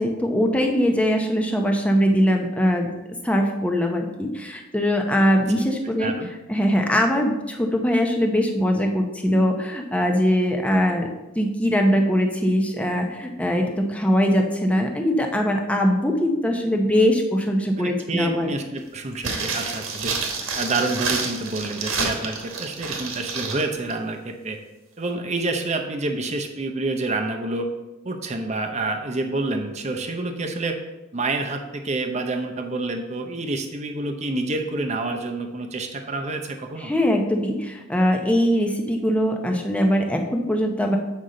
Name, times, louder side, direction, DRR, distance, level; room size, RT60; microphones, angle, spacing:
voice 1, 0.0-2.9 3.2-6.1 6.5-11.1 11.4-18.5 36.8-41.0, equal, 5° left, 2 dB, 0.7 m, -21 dB
voice 2, 6.0-6.3 17.8-20.2 20.5-24.6 25.0-27.7 28.0-30.8 31.1-36.9, right 2 dB, 35° right, 4 dB, 0.7 m, -28 dB
sound 1, 19.2-23.6 23.9-24.0, right 4 dB, 80° right, 1.3 m, -28 dB
7.9 x 5.4 x 3.8 m, 1.1 s
head